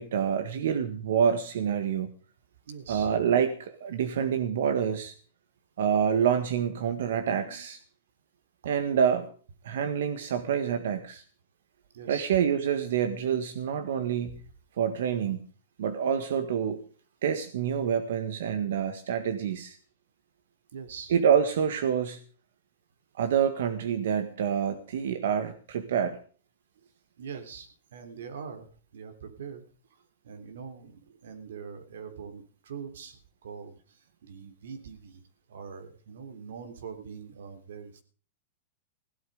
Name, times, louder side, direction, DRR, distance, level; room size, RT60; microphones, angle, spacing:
voice 1, 0.0-2.1 2.9-5.1 5.8-7.8 8.6-9.3 9.6-11.2 12.1-14.4 14.8-15.4 15.8-16.8 17.2-19.8 21.1-22.2 23.2-26.2, right 8 dB, 70° right, 9 dB, 1.8 m, -27 dB
voice 2, 2.7-3.1 11.9-12.3 20.7-21.1 27.2-28.7 28.9-29.6 30.2-35.2 35.5-38.0, right 6 dB, 85° right, 8 dB, 3.5 m, -43 dB
16.5 x 12.5 x 5.0 m, 0.41 s
supercardioid pair, 165°, 0 cm